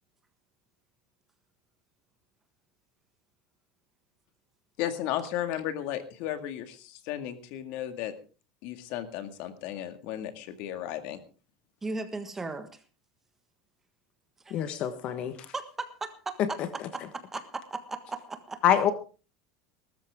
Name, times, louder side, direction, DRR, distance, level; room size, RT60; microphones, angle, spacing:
voice 1, 4.8-8.1 8.6-11.2, left 11 dB, 60° left, 9 dB, 2.0 m, -34 dB
voice 2, 11.8-12.8 14.4-14.7 15.5-18.6, right 3 dB, 10° right, 9 dB, 1.5 m, -37 dB
voice 3, 14.5-15.4 16.4-16.5 18.6-18.9, left 9 dB, 40° left, 11 dB, 1.3 m, -25 dB
19.5 x 13.0 x 3.6 m, 0.35 s
supercardioid pair, 150°, 3 cm